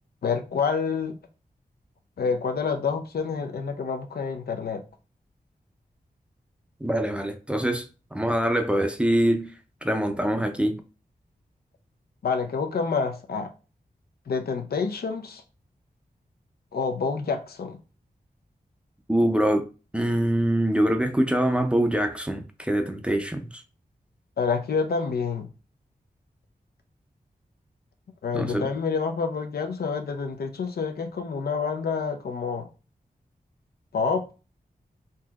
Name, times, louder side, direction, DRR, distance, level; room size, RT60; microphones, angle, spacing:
voice 1, 0.2-1.2 2.2-4.8 12.2-13.5 14.3-15.4 16.7-17.8 24.4-25.5 28.2-32.7 33.9-34.3, left 5 dB, 80° left, 0.5 m, -28 dB
voice 2, 6.8-7.8 8.1-9.5 9.8-10.7 19.1-19.6 19.9-23.5 28.3-28.7, right 1 dB, 5° right, 0.4 m, -24 dB
3.9 x 2.7 x 2.3 m
wide cardioid pair, 95°, 16 cm